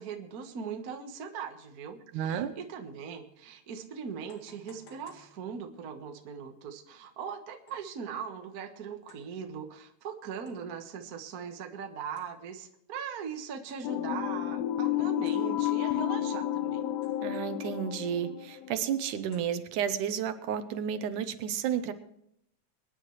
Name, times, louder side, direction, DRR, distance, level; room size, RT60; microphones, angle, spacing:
voice 1, 0.0-16.8, right 7 dB, 55° right, 5 dB, 1.0 m, -40 dB
voice 2, 2.1-2.6 17.2-21.9, right 9 dB, 80° right, 10 dB, 2.4 m, -32 dB
sound 1, 4.3-6.0 7.7-8.0 9.1-9.4 10.5-10.9 12.2-12.8 13.7-14.1 15.2-16.0 17.0-18.2 19.3-20.0, left 3 dB, 60° left, 3.3 m, -60 dB
sound 2, 13.8-19.1, left 12 dB, 80° left, 1.5 m, -31 dB
24.0 x 10.5 x 3.2 m, 0.74 s
omnidirectional pair, 3.7 m